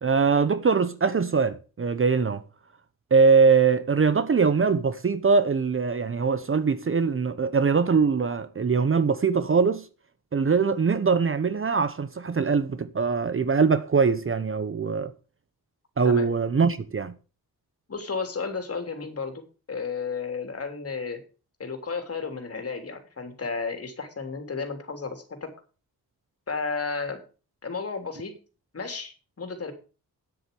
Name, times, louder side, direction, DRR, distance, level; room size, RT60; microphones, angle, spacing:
voice 1, 0.0-2.4 3.1-9.9 10.3-15.1 16.0-17.1, right 5 dB, 35° right, 0.9 m, -22 dB
voice 2, 17.9-21.2 21.6-25.5 26.5-27.2 27.6-28.3 28.7-29.7, left 4 dB, 40° left, 3.2 m, -33 dB
9.6 x 8.0 x 6.8 m
cardioid pair, 95°, 37 cm